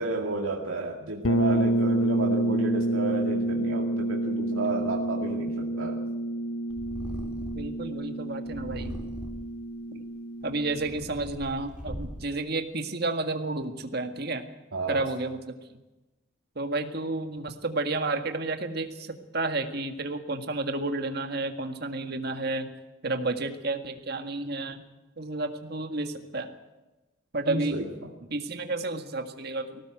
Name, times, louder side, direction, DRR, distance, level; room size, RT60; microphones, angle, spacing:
voice 1, 0.0-6.0 14.7-15.0 27.5-27.8, right 2 dB, 85° right, -1 dB, 2.3 m, -31 dB
sound 1, 1.2-10.9, right 1 dB, 85° left, 1.1 m, -28 dB
Purr, 6.7-7.8 8.5-9.6 10.3-12.4, equal, 5° right, 3.5 m, -40 dB
voice 2, 7.5-9.0 10.4-14.4 14.9-15.5 16.6-22.7 23.0-24.8 25.2-26.5 27.3-27.8 28.3-29.8, right 2 dB, 50° right, 6 dB, 1.9 m, -31 dB
19.5 x 17.0 x 7.9 m, 1.1 s
head